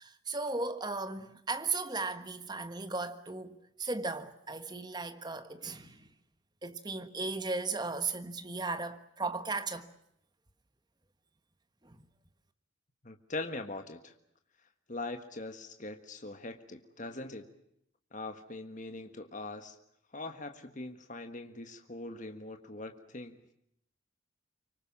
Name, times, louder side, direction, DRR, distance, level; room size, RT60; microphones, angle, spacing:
voice 1, 0.0-5.9 6.6-9.9, right 3 dB, 20° right, 1.3 m, -36 dB
voice 2, 13.0-14.1 14.9-17.5 18.1-19.8 20.1-23.4, left 2 dB, 35° left, 1.6 m, -42 dB
25.5 x 24.0 x 7.3 m
head